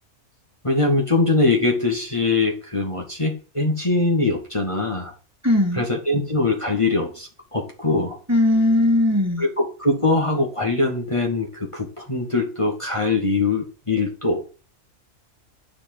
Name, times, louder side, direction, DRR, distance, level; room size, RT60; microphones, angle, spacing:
voice 1, 0.6-5.1 5.7-8.2 9.4-14.6, left 3 dB, 25° left, 0 dB, 2.1 m, -22 dB
voice 2, 5.4-5.8 8.3-9.5, left 1 dB, 10° right, 2 dB, 2.3 m, -18 dB
9.7 x 5.1 x 7.7 m, 0.35 s
omnidirectional pair, 1.4 m